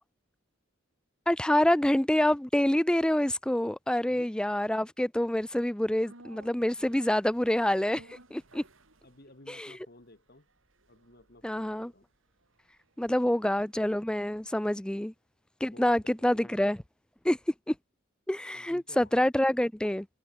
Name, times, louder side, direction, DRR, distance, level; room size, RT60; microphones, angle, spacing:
voice 1, 1.3-8.6 9.5-9.7 11.4-11.9 13.0-15.1 15.6-16.8 17.2-17.4 17.7-17.8 18.3-20.1, left 1 dB, 5° left, 0.3 m, -27 dB
sound 1, 6.0-14.3 14.6-14.7, right 2 dB, 65° right, 4.4 m, -58 dB
voice 2, 9.0-10.5 10.9-12.1 15.6-16.6 18.5-19.1, left 1 dB, 50° left, 2.4 m, -55 dB
head